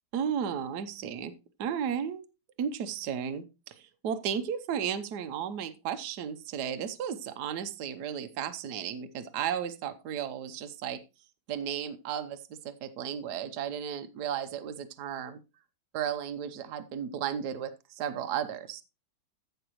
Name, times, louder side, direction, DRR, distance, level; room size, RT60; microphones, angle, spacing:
voice 1, 0.1-1.3 1.6-2.2 2.6-11.0 11.5-15.4 15.9-18.8, right 8 dB, 65° right, 9 dB, 1.4 m, -34 dB
15.0 x 6.0 x 3.0 m, 0.27 s
omnidirectional pair, 2.0 m